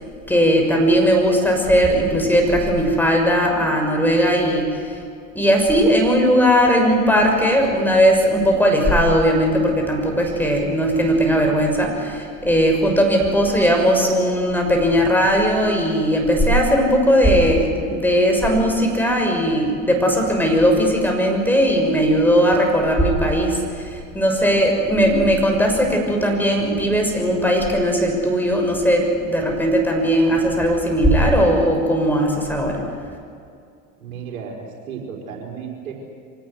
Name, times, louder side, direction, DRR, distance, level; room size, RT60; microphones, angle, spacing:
voice 1, 0.3-5.0 5.3-32.8, equal, 5° left, 2 dB, 6.4 m, -18 dB
voice 2, 34.0-34.6 34.9-35.9, right 7 dB, 75° right, 1 dB, 5.0 m, -33 dB
24.5 x 18.5 x 9.7 m, 2.4 s
hypercardioid pair, 80°, 41 cm